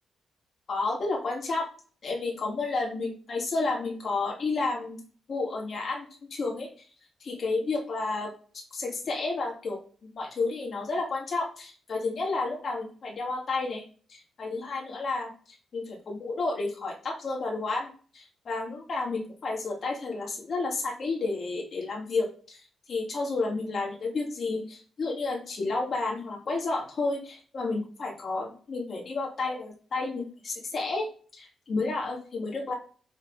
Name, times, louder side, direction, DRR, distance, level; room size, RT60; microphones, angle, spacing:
voice 1, 0.7-1.7 2.0-5.0 5.3-6.7 7.2-8.3 8.7-13.8 14.1-22.6 22.9-31.1 31.3-32.7, left 3 dB, 50° left, -1 dB, 2.5 m, -31 dB
6.2 x 4.1 x 4.8 m, 0.41 s
cardioid pair, 105°, 0 cm